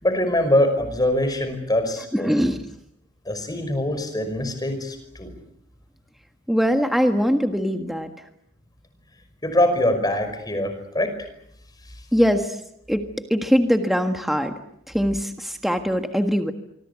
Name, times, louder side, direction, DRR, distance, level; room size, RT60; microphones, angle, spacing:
voice 1, 0.0-2.3 3.3-5.3 9.4-11.3, left 1 dB, 20° left, 9 dB, 5.5 m, -23 dB
voice 2, 2.1-2.6 6.5-8.3 12.1-12.6 12.9-13.0 13.3-14.5 14.9-16.5, equal, ahead, 6 dB, 1.6 m, -22 dB
25.0 x 25.0 x 8.3 m, 0.76 s
head